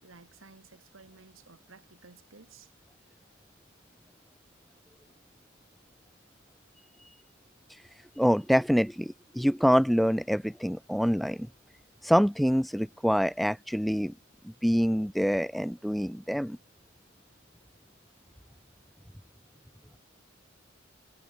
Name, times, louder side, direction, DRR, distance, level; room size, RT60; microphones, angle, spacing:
voice 1, 0.0-2.7, right 4 dB, 75° right, 1.6 m, -54 dB
voice 2, 8.2-11.5 12.0-14.1 14.4-16.6, equal, ahead, 0.4 m, -26 dB
head